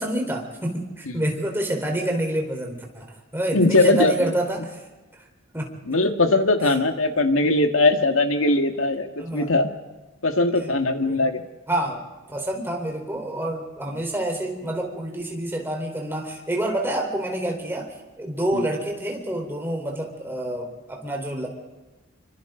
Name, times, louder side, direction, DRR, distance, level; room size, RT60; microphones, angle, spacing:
voice 1, 0.0-4.8 5.5-5.7 7.4-7.5 9.2-9.5 11.0-11.2 11.7-12.0 12.3-17.9 18.2-21.5, right 1 dB, 10° right, 1 dB, 4.2 m, -27 dB
voice 2, 3.5-4.1 5.9-9.7 10.2-11.4 18.5-18.7, left 2 dB, 75° left, 5 dB, 1.9 m, -20 dB
27.0 x 25.0 x 3.9 m, 1.2 s
head